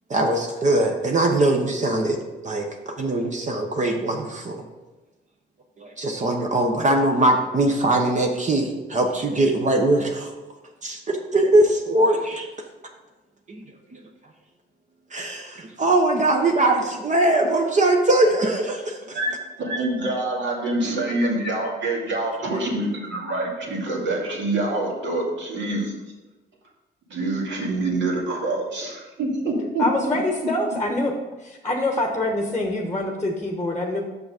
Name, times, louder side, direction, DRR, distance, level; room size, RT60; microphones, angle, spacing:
voice 1, 0.1-2.2 2.4-4.6 5.8-10.3 10.8-12.5 13.5-13.6 15.1-19.2, right 1 dB, 40° right, 3 dB, 1.0 m, -21 dB
voice 2, 19.6-25.9 27.1-29.9 30.4-30.5, right 2 dB, 65° right, -2 dB, 2.3 m, -26 dB
voice 3, 29.8-31.1 31.4-34.0, left 1 dB, 15° left, 2 dB, 1.1 m, -25 dB
6.2 x 6.0 x 5.1 m, 1.1 s
cardioid pair, 90°, 20 cm